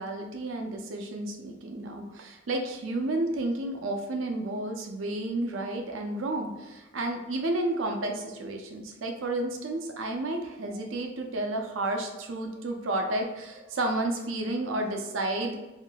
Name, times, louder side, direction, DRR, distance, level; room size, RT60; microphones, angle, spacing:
voice 1, 0.0-15.6, right 2 dB, 85° right, 3 dB, 0.5 m, -31 dB
3.6 x 2.5 x 2.2 m, 1.1 s
head